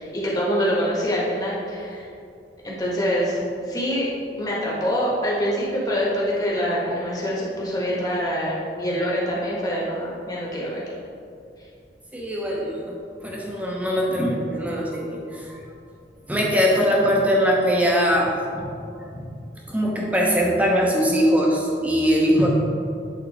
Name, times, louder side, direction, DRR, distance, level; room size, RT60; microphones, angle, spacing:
voice 1, 0.0-2.1 2.6-4.1 4.4-10.8, equal, 20° left, -6 dB, 1.5 m, -25 dB
voice 2, 12.1-15.6 16.3-18.7 19.0-19.3 19.7-22.5, equal, 10° right, -2 dB, 0.9 m, -22 dB
8.6 x 4.0 x 3.5 m, 2.5 s
head